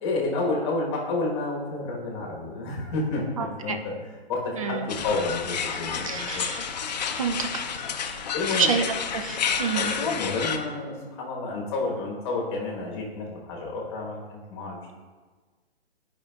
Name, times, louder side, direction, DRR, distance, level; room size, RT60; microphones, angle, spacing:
voice 1, 0.0-6.5 8.3-8.7 9.7-14.9, left 3 dB, 25° left, -1 dB, 1.2 m, -30 dB
voice 2, 3.4-3.8 4.6-4.9 6.0-6.7 7.2-7.6 8.6-8.8 9.1-9.9, right 6 dB, 35° right, 7 dB, 0.4 m, -28 dB
sound 1, 4.9-10.6, left 6 dB, 45° left, 0.5 m, -30 dB
10.5 x 5.1 x 2.3 m, 1.4 s
hypercardioid pair, 165°, 31 cm